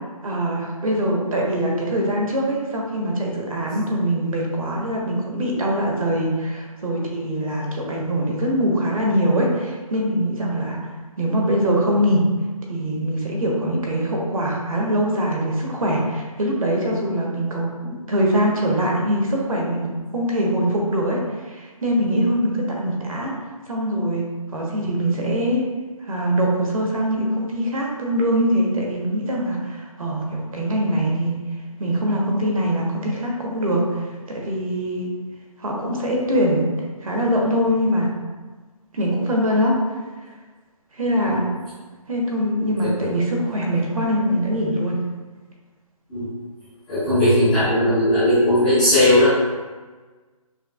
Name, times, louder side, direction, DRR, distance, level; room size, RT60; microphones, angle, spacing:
voice 1, 0.2-10.8 11.2-12.2 12.7-23.3 23.7-24.2 24.5-25.6 26.0-31.4 31.8-35.1 35.6-36.7 37.0-38.1 38.9-39.7 40.9-41.5 42.1-45.0, equal, 65° right, -1 dB, 1.1 m, -23 dB
voice 2, 46.9-49.4, left 1 dB, 5° left, -19 dB, 0.4 m, -17 dB
5.5 x 2.4 x 2.3 m, 1.3 s
hypercardioid pair, 165°, 19 cm